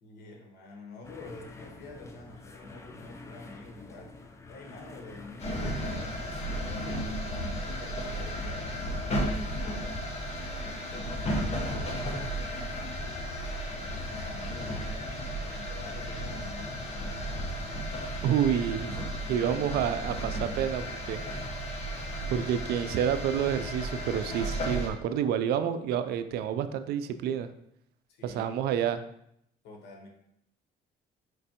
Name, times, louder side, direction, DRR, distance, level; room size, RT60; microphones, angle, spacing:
voice 1, 0.0-10.0 10.3-11.2 11.6-17.5 28.1-28.9 29.6-30.1, left 2 dB, 75° left, 1 dB, 1.1 m, -48 dB
sound 1, 1.0-6.8, left 3 dB, 15° left, 0.4 m, -48 dB
sound 2, 5.4-24.9, equal, 40° left, 1.0 m, -34 dB
voice 2, 18.2-19.0 19.3-21.2 22.3-27.5 28.2-29.0, right 9 dB, 70° right, 10 dB, 0.4 m, -29 dB
5.1 x 3.2 x 2.8 m, 0.75 s
cardioid pair, 110°, 17 cm